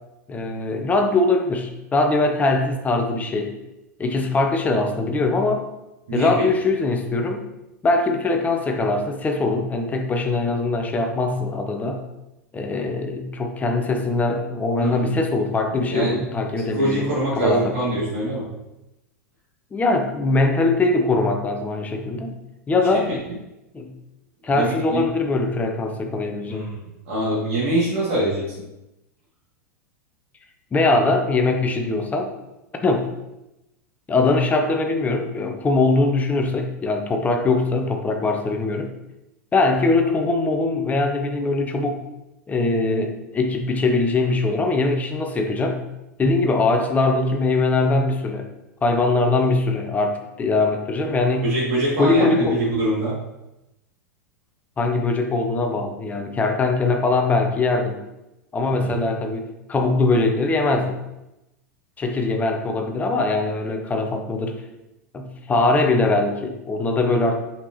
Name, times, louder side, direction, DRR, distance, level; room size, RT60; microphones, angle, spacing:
voice 1, 0.3-3.5 4.0-5.6 6.1-7.4 7.8-12.0 12.5-17.1 17.4-17.8 19.7-22.4 22.7-23.1 23.7-23.9 24.4-26.7 30.7-32.3 32.8-33.1 34.1-38.9 39.5-42.0 42.5-45.8 46.2-48.5 48.8-51.5 52.0-52.6 54.8-58.0 58.5-61.0 62.0-64.6 65.1-67.4, left 3 dB, 15° left, 4 dB, 1.1 m, -21 dB
voice 2, 6.1-6.5 14.8-15.2 15.9-16.2 16.6-18.5 22.9-23.2 24.5-25.0 26.5-26.8 27.1-28.5 51.4-53.2 58.7-58.8, right 1 dB, 50° right, -8 dB, 2.8 m, -24 dB
8.0 x 5.9 x 3.2 m, 0.93 s
figure-of-eight pair, 90°, 9 cm